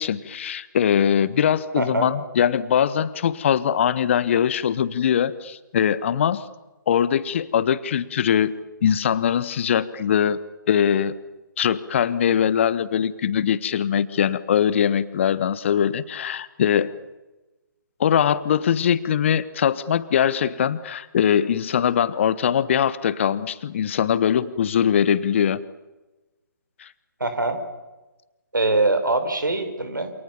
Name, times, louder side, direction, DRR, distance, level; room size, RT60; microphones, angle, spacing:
voice 1, 0.0-6.4 6.9-8.5 8.8-10.4 10.7-11.1 11.6-16.9 18.0-25.6 26.8-26.9, left 8 dB, 35° left, 16 dB, 1.4 m, -21 dB
voice 2, 1.8-2.1 27.2-27.6 28.5-30.1, right 2 dB, 70° right, 9 dB, 5.3 m, -23 dB
28.5 x 27.0 x 7.1 m, 1.1 s
figure-of-eight pair, 140°, 11 cm